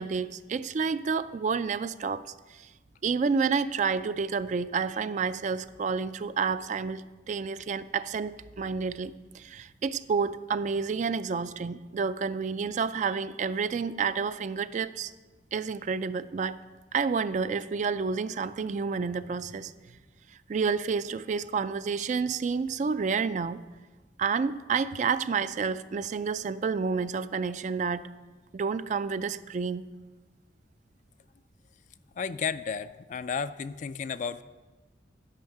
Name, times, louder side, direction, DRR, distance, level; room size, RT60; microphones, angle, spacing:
voice 1, 0.0-2.2 3.0-15.1 15.5-16.6 16.9-19.7 20.5-23.6 24.2-28.1 28.5-29.8, right 5 dB, 40° right, 14 dB, 0.3 m, -29 dB
voice 2, 32.1-34.4, left 6 dB, 45° left, 14 dB, 0.3 m, -33 dB
10.5 x 5.5 x 7.7 m, 1.3 s
head